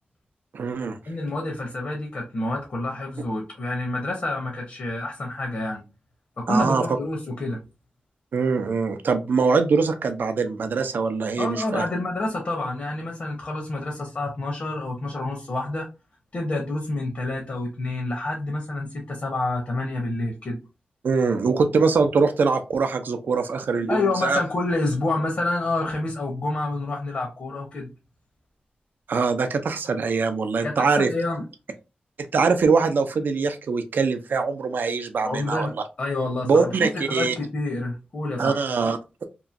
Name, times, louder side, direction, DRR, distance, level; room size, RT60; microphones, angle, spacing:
voice 1, 0.5-1.0 6.5-6.8 8.3-11.8 21.0-24.4 29.1-31.1 32.2-35.7 36.4-37.3 38.4-39.0, right 4 dB, 75° right, 8 dB, 0.4 m, -23 dB
voice 2, 1.1-5.8 6.4-7.6 11.4-15.9 16.3-20.6 23.9-27.9 30.6-31.4 35.2-38.6, left 2 dB, 55° left, 1 dB, 0.7 m, -28 dB
2.9 x 2.5 x 2.4 m, 0.29 s
wide cardioid pair, 130°, 3 cm